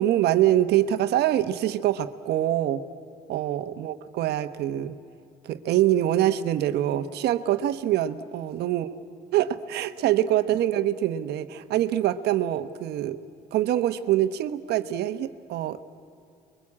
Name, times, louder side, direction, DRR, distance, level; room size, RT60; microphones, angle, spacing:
voice 1, 0.0-2.8 3.3-5.0 5.4-8.9 9.3-13.2 13.5-15.8, right 12 dB, 75° right, 10 dB, 1.2 m, -24 dB
29.5 x 23.0 x 8.7 m, 2.5 s
cardioid pair, 110°, 17 cm